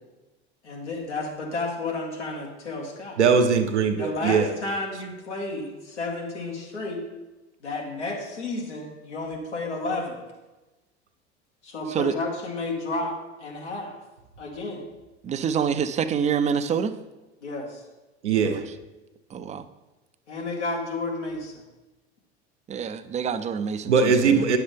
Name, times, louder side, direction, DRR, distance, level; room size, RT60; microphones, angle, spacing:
voice 1, 0.6-3.2 4.0-7.0 7.6-10.2 11.6-14.0 14.4-14.8 17.4-17.8 20.3-21.5, left 2 dB, 85° left, -1 dB, 1.8 m, -31 dB
voice 2, 3.2-4.5 18.2-18.6 23.9-24.6, right 5 dB, 85° right, 3 dB, 0.9 m, -20 dB
voice 3, 15.2-16.9 18.5-18.6 19.3-19.6 22.7-24.5, right 7 dB, 20° right, 11 dB, 0.4 m, -26 dB
9.3 x 6.8 x 3.4 m, 1.1 s
hypercardioid pair, 85°, 34 cm